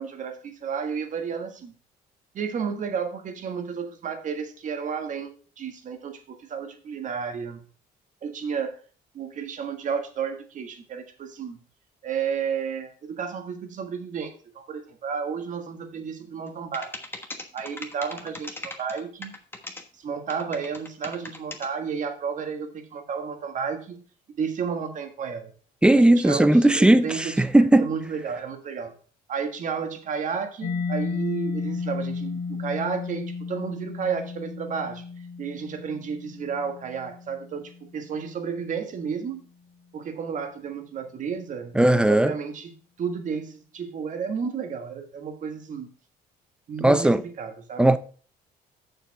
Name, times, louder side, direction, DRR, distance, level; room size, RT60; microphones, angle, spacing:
voice 1, 0.0-1.7 2.3-7.6 8.2-8.8 9.1-11.6 12.0-16.9 17.5-19.4 20.0-24.0 24.4-25.5 25.9-27.3 27.8-28.9 29.3-35.0 35.4-39.4 39.9-42.7 43.0-45.9 46.7-47.9, right 6 dB, 50° right, 1.6 m, -32 dB
sound 1, 16.5-16.6 16.7-19.8 20.3-21.7, left 2 dB, 15° left, 1.2 m, -38 dB
voice 2, 25.8-27.9 41.8-42.3 46.8-47.2 47.8-48.0, right 1 dB, 5° right, 0.5 m, -17 dB
Mallet percussion, 30.6-38.1, left 4 dB, 60° left, 1.4 m, -33 dB
7.0 x 6.9 x 4.7 m
cardioid pair, 110°, 17 cm